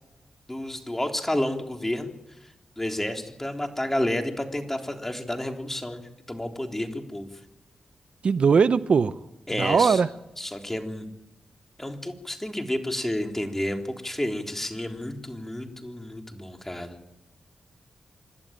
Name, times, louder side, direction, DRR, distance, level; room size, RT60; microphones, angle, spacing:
voice 1, 0.5-2.1 2.8-6.0 6.3-7.3 9.5-10.0 10.4-11.1 11.8-17.0, left 1 dB, 15° left, 3.6 m, -30 dB
voice 2, 8.2-9.1 9.6-10.1, right 5 dB, 65° right, 0.6 m, -20 dB
26.5 x 12.0 x 8.9 m
supercardioid pair, 40°, 2 cm